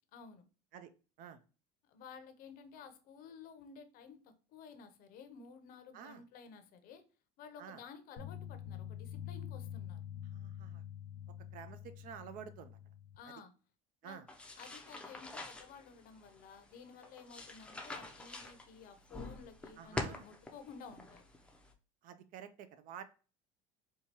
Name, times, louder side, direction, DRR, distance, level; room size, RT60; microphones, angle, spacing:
voice 1, 0.1-0.4 1.8-7.0 7.4-10.0 13.2-13.5 14.0-14.2 14.6-21.2, left 6 dB, 50° left, 0.7 m, -53 dB
sound 1, 8.2-13.2, left 10 dB, 90° left, 1.1 m, -46 dB
voice 2, 10.2-10.8 11.5-12.8 13.3-13.4 14.0-14.3 19.8-20.3 22.0-23.0, right 8 dB, 50° right, 0.4 m, -50 dB
sound 2, 14.3-21.7, left 2 dB, 5° left, 0.5 m, -46 dB
4.5 x 2.3 x 2.8 m
supercardioid pair, 125°, 18 cm